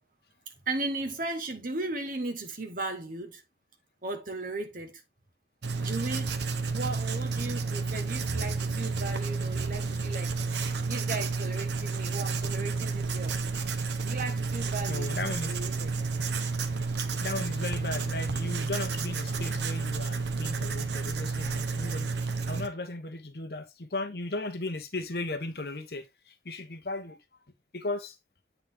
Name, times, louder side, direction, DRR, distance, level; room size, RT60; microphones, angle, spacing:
voice 1, 0.7-3.4 4.0-5.0 5.8-10.4 10.9-13.4 14.0-15.9 17.0-17.1, right 2 dB, 50° right, 1.3 m, -36 dB
Writing, 5.6-22.7, right 4 dB, 75° right, 0.8 m, -31 dB
voice 2, 14.9-15.6 16.2-16.5 17.2-27.2 27.7-28.2, left 2 dB, 60° left, 1.0 m, -36 dB
8.3 x 4.1 x 3.5 m
head